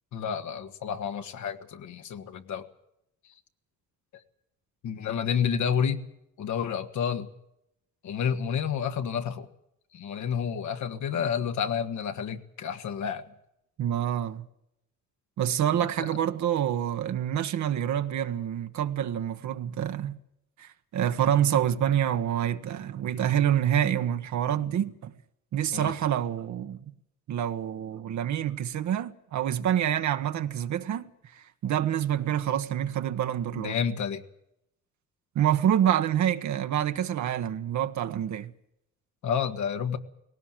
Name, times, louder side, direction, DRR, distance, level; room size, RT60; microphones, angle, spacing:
voice 1, 0.1-2.7 4.8-6.0 6.4-7.3 8.0-9.5 9.9-13.3 16.0-16.1 25.7-25.9 33.5-34.2 39.2-40.0, left 7 dB, 70° left, 1.8 m, -30 dB
voice 2, 13.8-14.5 15.4-20.2 20.6-25.1 25.5-26.9 27.3-31.1 31.3-33.8 35.3-38.5, right 10 dB, 70° right, 1.3 m, -27 dB
19.0 x 18.0 x 9.1 m
cardioid pair, 90°, 30 cm